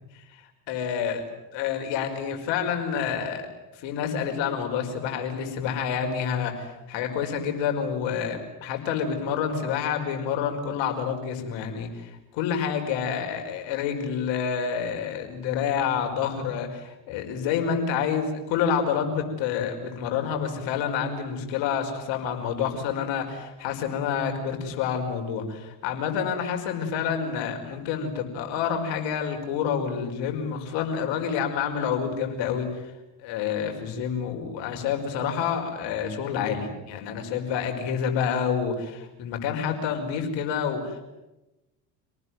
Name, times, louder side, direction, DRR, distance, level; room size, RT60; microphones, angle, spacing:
voice 1, 0.7-1.2 1.5-3.4 3.8-32.7 33.2-41.0, left 7 dB, 65° left, 4 dB, 5.4 m, -28 dB
27.0 x 19.0 x 9.5 m, 0.98 s
hypercardioid pair, 70°, 48 cm